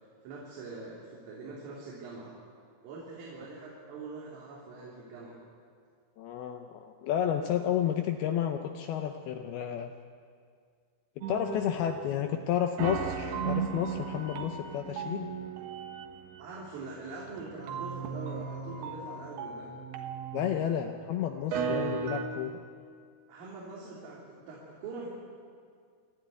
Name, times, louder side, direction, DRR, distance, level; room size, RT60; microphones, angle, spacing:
voice 1, 0.2-2.3 2.8-5.4 16.4-19.7 23.3-25.1, right 3 dB, 85° right, -5 dB, 5.9 m, -43 dB
voice 2, 6.2-9.9 11.2-15.3 20.3-22.6, left 10 dB, 90° left, 5 dB, 2.2 m, -31 dB
sound 1, 11.2-12.4 12.8-20.9 21.4-22.3, right 6 dB, 65° right, 3.0 m, -36 dB
27.5 x 13.5 x 9.5 m, 2.1 s
omnidirectional pair, 5.7 m